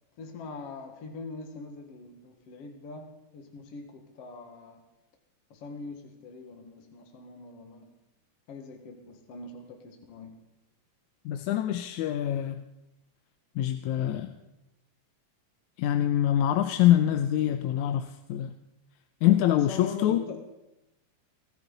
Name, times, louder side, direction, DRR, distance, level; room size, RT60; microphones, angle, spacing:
voice 1, 0.2-4.8 5.5-7.9 8.5-10.4 19.2-20.4, left 4 dB, 55° left, 3 dB, 2.6 m, -43 dB
voice 2, 11.3-12.6 13.6-14.3 15.8-18.5 19.2-20.2, left 12 dB, 90° left, 7 dB, 2.1 m, -25 dB
25.0 x 14.0 x 4.0 m, 0.93 s
omnidirectional pair, 3.3 m